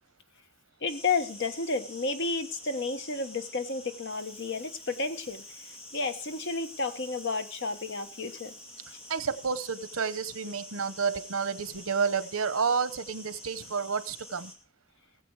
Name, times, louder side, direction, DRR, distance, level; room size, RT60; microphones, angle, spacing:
voice 1, 0.8-8.5, left 3 dB, 55° left, 8 dB, 1.2 m, -32 dB
sound 1, 0.9-14.6, left 1 dB, 30° left, 2.4 m, -47 dB
voice 2, 9.1-14.5, right 5 dB, 85° right, 14 dB, 0.9 m, -30 dB
18.5 x 7.8 x 4.7 m, 0.37 s
head